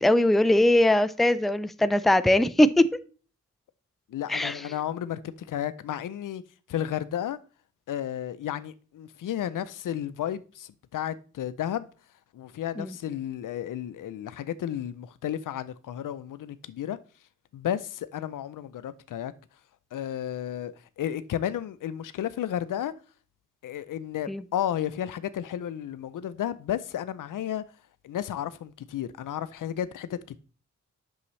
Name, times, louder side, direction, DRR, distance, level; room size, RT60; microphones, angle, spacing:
voice 1, 0.0-2.9 4.3-4.6 12.8-12.9 24.3-24.4, left 1 dB, ahead, 0.4 m, -21 dB
voice 2, 4.1-6.4 6.7-7.4 7.9-11.9 12.3-17.0 17.5-19.3 19.9-22.9 23.6-27.6 28.0-30.4, left 10 dB, 80° left, 0.6 m, -32 dB
8.5 x 6.4 x 3.2 m
cardioid pair, 85°, 31 cm